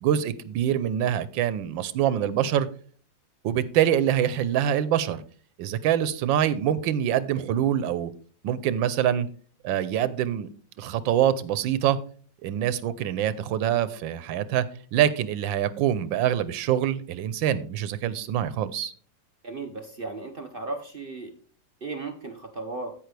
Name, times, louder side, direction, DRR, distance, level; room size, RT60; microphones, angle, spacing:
voice 1, 0.0-2.7 3.4-5.2 5.6-8.1 8.4-9.3 9.6-10.5 10.8-12.0 12.4-18.9, right 10 dB, 90° right, 16 dB, 1.4 m, -25 dB
voice 2, 19.4-21.3 21.8-22.9, right 3 dB, 50° right, 5 dB, 0.7 m, -35 dB
15.0 x 5.2 x 3.3 m, 0.44 s
omnidirectional pair, 2.0 m